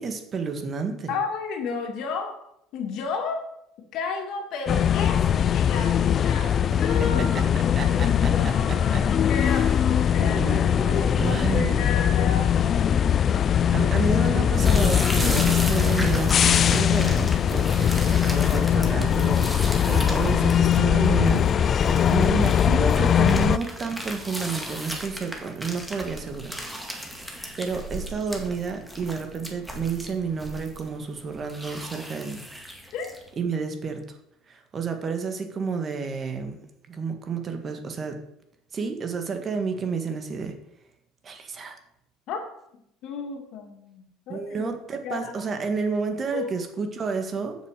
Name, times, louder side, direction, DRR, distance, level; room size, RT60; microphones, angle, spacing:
voice 1, 0.0-1.1 6.6-6.7 7.8-8.1 8.7-9.0 9.4-9.8 10.2-11.8 13.7-21.4 22.1-27.1 27.6-32.4 33.4-34.0 34.5-36.6 36.9-38.2 38.7-40.5 41.2-41.8 44.3-47.6, right 5 dB, 35° right, 6 dB, 1.8 m, -30 dB
voice 2, 1.1-2.4 2.7-3.4 3.9-5.2 5.5-6.5 6.8-12.9 32.9-33.1 42.3-42.4 43.0-45.3 46.3-46.5, left 5 dB, 60° left, 3 dB, 2.3 m, -33 dB
sound 1, 4.7-23.6, left 9 dB, 40° left, 0.4 m, -21 dB
sound 2, 14.6-33.3, right 1 dB, 5° right, 2.0 m, -36 dB
7.8 x 6.8 x 6.6 m, 0.79 s
supercardioid pair, 90°, 0 cm